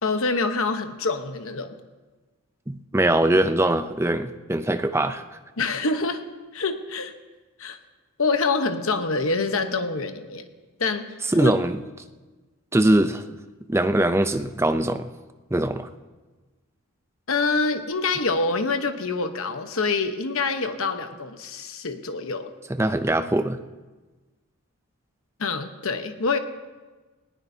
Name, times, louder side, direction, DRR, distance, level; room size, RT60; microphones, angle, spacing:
voice 1, 0.0-1.7 5.6-6.2 6.5-7.1 7.6-7.8 8.2-10.5 10.8-11.5 17.3-22.5 25.4-26.4, left 3 dB, 70° left, 7 dB, 1.0 m, -26 dB
voice 2, 2.7-5.2 11.3-11.8 12.7-13.2 13.7-15.1 15.5-15.9 22.7-23.6, right 1 dB, 10° right, 9 dB, 0.4 m, -22 dB
19.0 x 18.0 x 2.8 m, 1.3 s
head